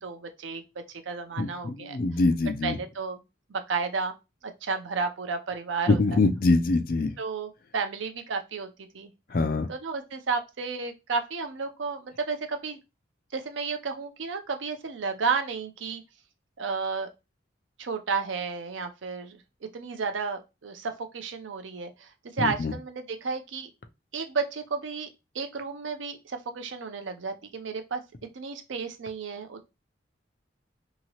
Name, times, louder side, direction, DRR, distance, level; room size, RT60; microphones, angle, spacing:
voice 1, 0.0-2.0 2.6-3.2 3.5-4.1 4.4-6.2 7.2-8.7 8.9-9.1 9.7-12.8 13.3-16.0 16.6-17.1 17.8-19.4 19.7-23.7 24.1-25.1 25.3-28.0 28.3-29.7, right 5 dB, 80° right, 0.6 m, -32 dB
voice 2, 1.4-2.8 5.9-7.1 9.3-9.7 22.4-22.7, left 3 dB, 50° left, 0.4 m, -24 dB
2.9 x 2.7 x 2.8 m
head